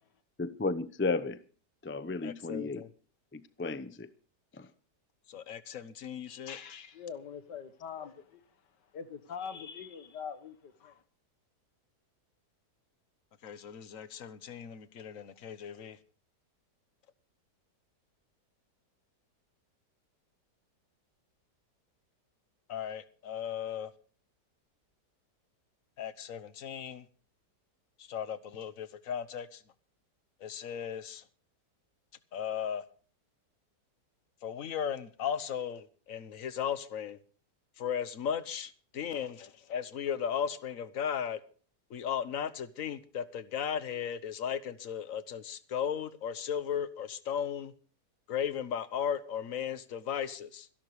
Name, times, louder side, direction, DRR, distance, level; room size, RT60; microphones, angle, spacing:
voice 1, 0.4-1.4 1.8-2.8 3.3-4.1 4.6-4.7, left 3 dB, 15° left, 0.4 m, -33 dB
voice 2, 2.2-2.9 5.3-6.6 13.4-16.0 22.7-23.9 26.0-27.0 28.0-29.6 30.4-31.2 32.3-32.8 34.4-37.2 37.8-41.4 41.9-47.7 48.3-50.7, left 8 dB, 55° left, 1.4 m, -36 dB
voice 3, 6.3-8.4 8.9-11.0, left 7 dB, 85° left, 2.0 m, -43 dB
25.5 x 12.0 x 3.2 m
omnidirectional pair, 1.8 m